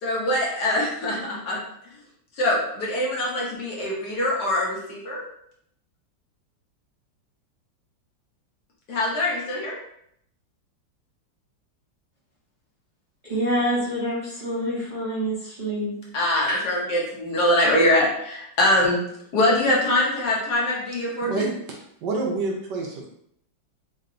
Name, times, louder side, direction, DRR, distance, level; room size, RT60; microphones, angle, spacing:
voice 1, 0.0-1.6 2.4-5.2 8.9-9.7 16.1-19.0 19.3-21.4, left 1 dB, 65° left, -3 dB, 1.4 m, -23 dB
voice 2, 13.2-15.9 16.5-16.6, equal, 35° right, -9 dB, 0.8 m, -26 dB
voice 3, 21.2-23.1, right 3 dB, 70° right, -1 dB, 1.2 m, -28 dB
3.8 x 2.2 x 3.7 m, 0.71 s
omnidirectional pair, 2.1 m